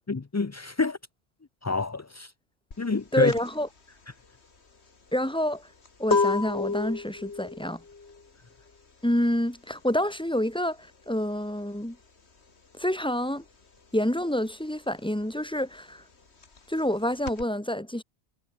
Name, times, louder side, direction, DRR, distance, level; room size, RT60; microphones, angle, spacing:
voice 1, 0.1-1.0 1.6-2.3 2.8-3.3, left 4 dB, 30° left, 0.3 m, -27 dB
sound 1, 2.7-12.9 13.2-17.4, left 4 dB, 85° left, 2.5 m, -32 dB
voice 2, 3.1-3.7 5.1-5.7 6.0-7.8 9.0-12.0 12.8-13.4 13.9-16.0 16.7-18.0, left 1 dB, 5° left, 1.5 m, -27 dB
omnidirectional pair, 1.1 m